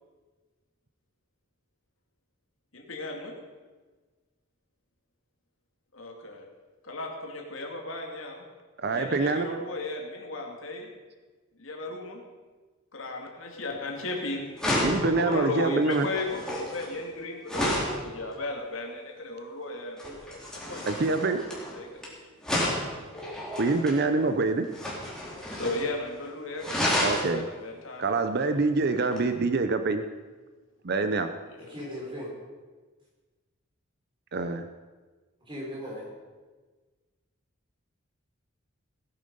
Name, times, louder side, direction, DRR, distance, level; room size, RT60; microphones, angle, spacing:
voice 1, 2.7-3.4 5.9-6.4 6.8-8.4 8.9-10.9 11.6-12.2 12.9-20.4 20.7-22.7 24.0-24.3 25.5-26.9 27.1-28.0 28.4-28.6 31.5-31.6, left 2 dB, 75° left, 1 dB, 2.5 m, -36 dB
voice 2, 8.8-9.6 14.8-16.1 20.9-21.4 23.6-24.7 27.0-27.5 28.0-30.0 30.8-31.3 34.3-34.7, right 3 dB, 55° right, 9 dB, 0.7 m, -25 dB
sound 1, 14.0-14.2 14.6-18.0 20.0-22.1 22.4-24.0 24.7-25.9 26.1-26.2 26.6-27.3 29.1-29.2, left 1 dB, 5° left, 3.8 m, -31 dB
voice 3, 31.6-32.3 35.4-36.1, equal, 25° right, -4 dB, 4.9 m, -38 dB
17.5 x 10.5 x 5.5 m, 1.3 s
head